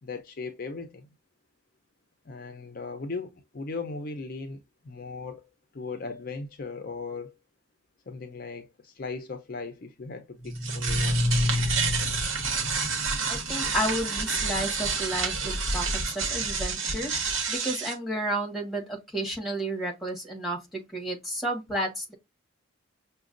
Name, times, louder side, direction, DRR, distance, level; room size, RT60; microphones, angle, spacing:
voice 1, 0.0-1.1 2.2-7.3 8.1-11.2, left 4 dB, 50° left, 0.5 m, -38 dB
sound 1, 10.4-17.9, right 2 dB, 90° right, 1.0 m, -28 dB
voice 2, 13.3-22.1, right 1 dB, ahead, 1.3 m, -32 dB
6.0 x 2.2 x 2.5 m
head